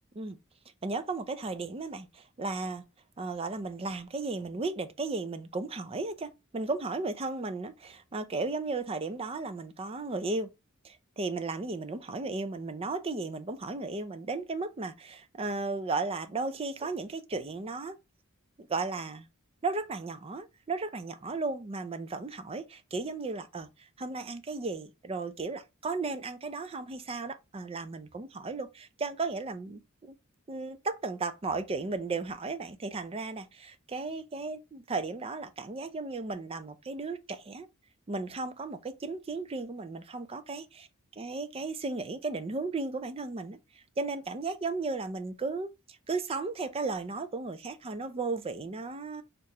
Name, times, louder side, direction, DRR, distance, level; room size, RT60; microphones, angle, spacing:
voice 1, 0.8-2.8 3.2-10.5 10.8-17.9 18.6-19.3 19.6-30.2 30.5-37.7 38.1-40.9 41.2-43.6 44.0-49.2, right 3 dB, 25° right, 0.5 m, -35 dB
6.4 x 2.5 x 2.8 m
head